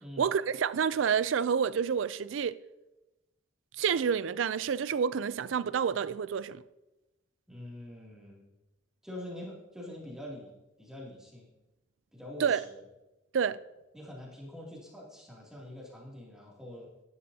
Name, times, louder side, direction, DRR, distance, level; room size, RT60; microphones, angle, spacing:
voice 1, 0.2-2.6 3.8-6.6 12.4-12.6 13.3-13.6, right 7 dB, 80° right, 0.4 m, -28 dB
voice 2, 7.5-8.5 9.0-11.5 12.1-12.8 13.9-16.9, left 1 dB, 5° right, 2.6 m, -45 dB
16.0 x 11.0 x 2.8 m
head